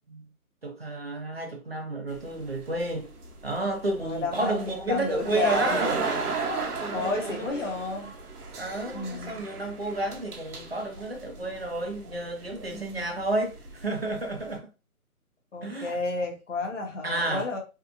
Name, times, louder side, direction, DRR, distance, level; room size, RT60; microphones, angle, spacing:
voice 1, 0.6-3.1 3.4-5.9 6.8-7.7 8.6-14.7 15.6-16.0 17.0-17.5, right 2 dB, 45° right, 0.5 m, -31 dB
sound 1, 2.1-14.5, right 4 dB, 85° right, 0.9 m, -36 dB
voice 2, 4.0-4.6 4.9-6.0 6.9-8.1 8.9-9.4 12.7-13.1 15.5-17.6, left 3 dB, 55° left, 0.9 m, -31 dB
2.7 x 2.3 x 2.4 m
hypercardioid pair, 180°, 44 cm